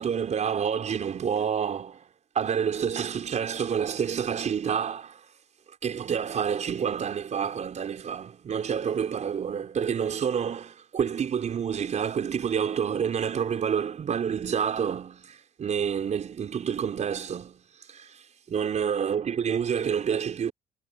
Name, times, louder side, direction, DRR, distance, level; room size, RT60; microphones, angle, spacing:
voice 1, 0.0-2.1 2.4-5.3 5.8-17.6 17.9-20.5, right 7 dB, 45° right, 5.4 m, -28 dB
cardioid pair, 110°, 17 cm